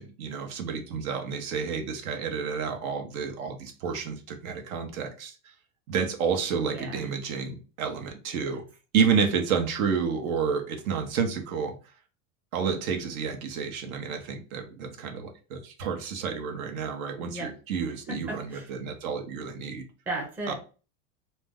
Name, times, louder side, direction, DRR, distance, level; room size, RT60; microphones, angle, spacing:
voice 1, 0.0-5.4 5.9-8.6 8.9-11.7 12.5-19.8 20.5-20.6, right 6 dB, 75° right, 5 dB, 0.9 m, -30 dB
voice 2, 6.7-7.1 17.2-17.5 18.1-18.7 20.1-20.5, right 1 dB, 5° right, -1 dB, 0.4 m, -35 dB
2.5 x 2.1 x 3.5 m, 0.35 s
supercardioid pair, 140°, 42 cm